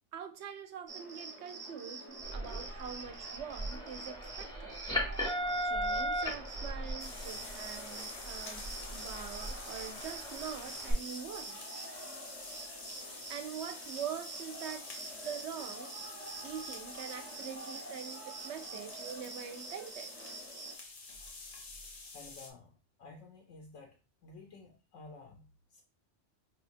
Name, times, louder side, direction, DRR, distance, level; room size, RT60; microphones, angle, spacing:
voice 1, 0.1-4.8 5.3-11.6 13.0-14.9 15.2-16.0 16.4-20.1, right 8 dB, 75° right, 0.8 m, -44 dB
Cricket, 0.9-20.7, right 3 dB, 30° right, 0.9 m, -46 dB
sound 1, 2.2-10.9, equal, 5° left, 0.6 m, -38 dB
sound 2, 7.0-22.5, left 3 dB, 50° left, 0.8 m, -48 dB
voice 2, 22.1-24.0 24.2-25.8, left 3 dB, 85° left, 1.0 m, -53 dB
4.9 x 2.2 x 2.5 m
omnidirectional pair, 1.2 m